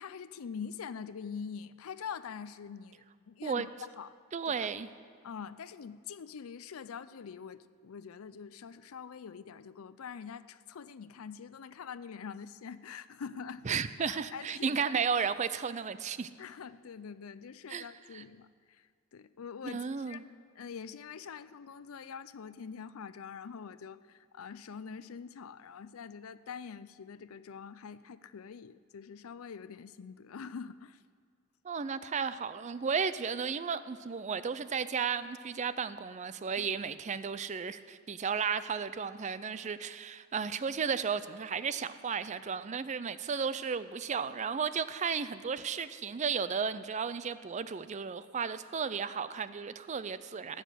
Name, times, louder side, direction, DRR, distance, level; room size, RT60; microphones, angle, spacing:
voice 1, 0.0-4.2 4.5-4.7 5.2-13.7 14.0-14.9 16.4-31.0 36.6-36.7, left 6 dB, 75° left, 15 dB, 0.5 m, -45 dB
voice 2, 4.3-4.9 13.7-16.3 17.7-17.9 18.1-18.2 19.6-20.2 31.6-50.6, right 6 dB, 35° right, 14 dB, 0.4 m, -34 dB
15.0 x 6.5 x 9.2 m, 2.1 s
head